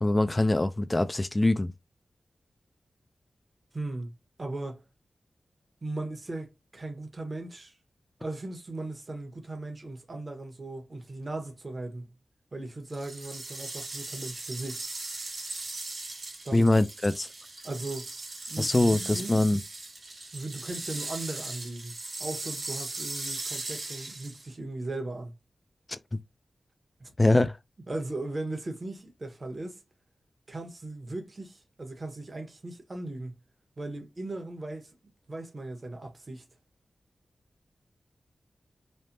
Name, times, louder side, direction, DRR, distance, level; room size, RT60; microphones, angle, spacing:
voice 1, 0.0-1.7 16.5-17.3 18.6-19.6 25.9-26.2 27.2-27.6, left 2 dB, 25° left, 0.3 m, -23 dB
voice 2, 3.7-4.1 4.4-4.8 5.8-7.8 8.2-12.1 12.5-14.8 16.4-16.7 17.6-18.1 18.5-19.4 20.3-21.9 22.2-25.3 27.0-27.4 27.9-29.8 30.5-33.4 33.8-34.9 35.3-36.4, right 2 dB, 45° right, 1.0 m, -38 dB
sound 1, 12.9-24.5, right 2 dB, 60° right, 1.3 m, -38 dB
3.2 x 2.1 x 2.6 m
cardioid pair, 50°, 0 cm